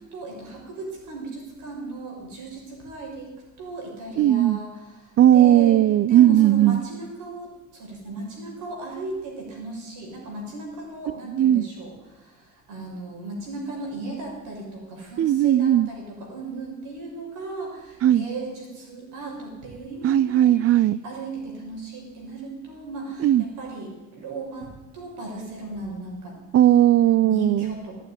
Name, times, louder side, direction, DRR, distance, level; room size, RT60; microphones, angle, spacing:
voice 1, 0.1-3.3 3.6-5.8 6.1-20.6 21.0-26.4 27.2-27.9, right 2 dB, 90° right, 0 dB, 6.2 m, -36 dB
voice 2, 4.2-4.6 5.2-6.8 11.3-11.7 15.2-15.9 18.0-18.2 20.0-21.0 23.2-23.5 26.5-27.8, right 12 dB, 50° right, 18 dB, 0.4 m, -17 dB
15.5 x 9.1 x 10.0 m, 1.1 s
cardioid pair, 90°, 30 cm